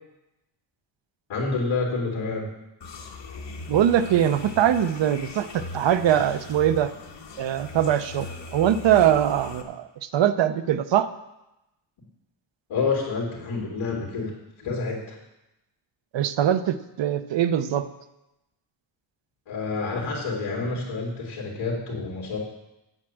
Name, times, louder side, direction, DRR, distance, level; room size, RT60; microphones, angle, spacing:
voice 1, 1.3-2.5 12.7-14.3 14.6-15.2 19.5-22.4, left 4 dB, 85° left, -3 dB, 2.8 m, -28 dB
sound 1, 2.8-9.6, left 3 dB, 60° left, 1.6 m, -39 dB
voice 2, 3.7-6.9 7.4-8.3 8.5-11.1 16.1-17.9, right 10 dB, 65° right, 11 dB, 0.8 m, -22 dB
8.1 x 7.5 x 8.8 m, 0.93 s
wide cardioid pair, 160°, 47 cm